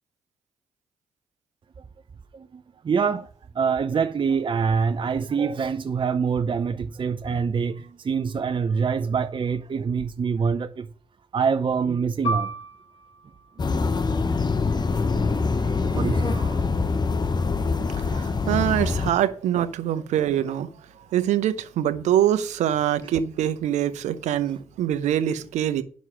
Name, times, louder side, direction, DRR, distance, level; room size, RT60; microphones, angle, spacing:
voice 1, 2.3-3.3 3.5-10.9 11.3-12.5 13.7-13.8 15.2-15.3 15.9-16.7, right 6 dB, 45° right, 0.7 m, -25 dB
Piano, 12.2-17.3 17.6-17.8 18.6-18.9, right 1 dB, 55° left, 1.6 m, -35 dB
sound 1, 13.6-19.1, left 4 dB, 35° left, 1.0 m, -24 dB
voice 2, 18.5-20.7 21.1-25.8, right 11 dB, 75° right, 0.8 m, -24 dB
9.5 x 6.2 x 5.7 m
hypercardioid pair, 45°, 12 cm